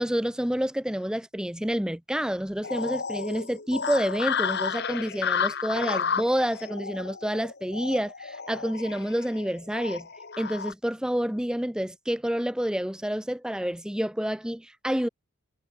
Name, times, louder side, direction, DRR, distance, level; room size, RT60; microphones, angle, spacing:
voice 1, 0.0-10.1 10.4-15.1, equal, 5° right, 0.6 m, -28 dB
sound 1, 2.6-10.7, left 6 dB, 50° left, 1.3 m, -32 dB
head